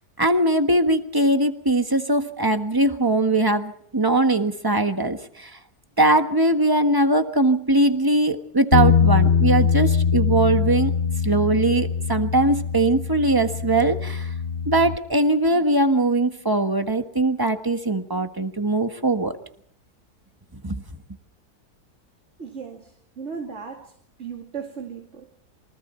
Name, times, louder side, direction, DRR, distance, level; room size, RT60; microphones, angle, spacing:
voice 1, 0.2-5.5 6.0-10.9 11.2-14.3 14.6-19.3 20.6-20.8, right 2 dB, 15° right, 7 dB, 1.3 m, -21 dB
Bass guitar, 8.7-15.0, left 6 dB, 40° left, 1.0 m, -22 dB
voice 2, 22.4-23.9 24.2-25.3, right 6 dB, 45° right, 2 dB, 2.6 m, -36 dB
27.5 x 24.0 x 4.4 m, 0.66 s
omnidirectional pair, 1.7 m